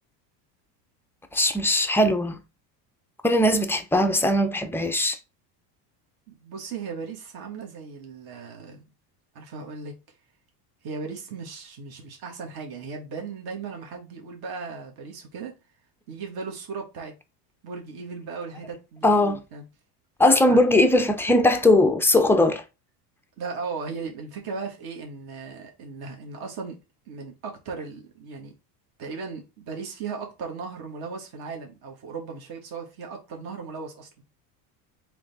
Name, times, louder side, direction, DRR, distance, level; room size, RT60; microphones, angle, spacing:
voice 1, 1.3-2.4 3.2-5.2 19.0-19.4 20.2-22.6, left 1 dB, 5° left, 0.3 m, -20 dB
voice 2, 6.3-8.8 9.3-9.9 10.8-15.5 16.1-17.1 17.6-19.6 20.4-20.6 23.4-26.8 27.1-28.5 29.0-34.1, right 5 dB, 45° right, 1.6 m, -37 dB
3.7 x 3.2 x 3.4 m
supercardioid pair, 95°, 49 cm